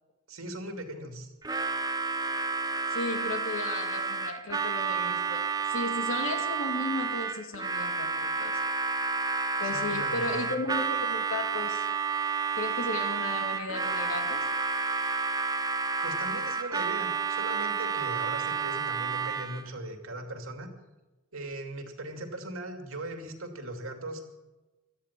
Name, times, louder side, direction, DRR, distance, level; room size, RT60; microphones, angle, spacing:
voice 1, 0.3-1.3 9.6-10.5 16.0-20.7 21.3-24.4, right 1 dB, 85° right, 5 dB, 2.6 m, -39 dB
Harmonica, 1.4-19.7, right 5 dB, 20° right, 0.7 m, -30 dB
voice 2, 2.9-8.6 9.6-11.9 12.5-14.4, left 2 dB, 75° left, 5 dB, 2.3 m, -35 dB
17.0 x 13.0 x 5.9 m, 1.1 s
head